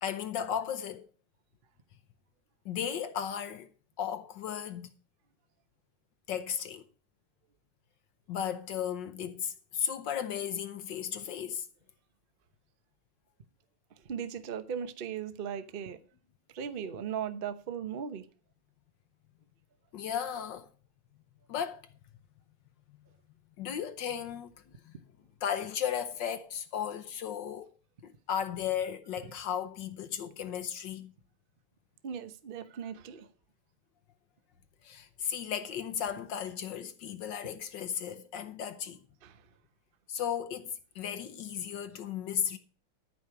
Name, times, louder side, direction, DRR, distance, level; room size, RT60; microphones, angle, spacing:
voice 1, 0.0-1.0 2.6-3.7 4.0-4.9 6.3-6.8 8.3-11.7 19.9-20.7 21.5-21.8 23.6-24.5 24.8-24.9 25.4-27.7 28.0-31.1 34.8-39.0 40.1-42.6, left 8 dB, 65° left, 1.3 m, -35 dB
voice 2, 14.0-16.0 16.5-18.2 32.0-33.3 39.2-39.4, right 8 dB, 60° right, 0.5 m, -37 dB
13.5 x 5.0 x 7.0 m
omnidirectional pair, 2.4 m